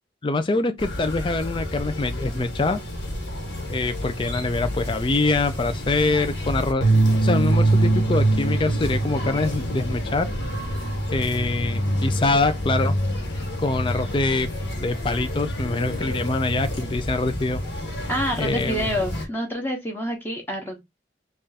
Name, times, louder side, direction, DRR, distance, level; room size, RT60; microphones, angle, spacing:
voice 1, 0.2-2.8 3.7-6.9 7.2-10.3 11.1-13.0 13.6-14.5 14.8-17.6 18.4-18.9, left 3 dB, 30° left, 0.4 m, -24 dB
sound 1, 0.8-19.2, right 1 dB, 70° left, 1.4 m, -26 dB
voice 2, 18.1-20.8, equal, 10° left, 0.9 m, -27 dB
3.4 x 2.4 x 4.0 m
head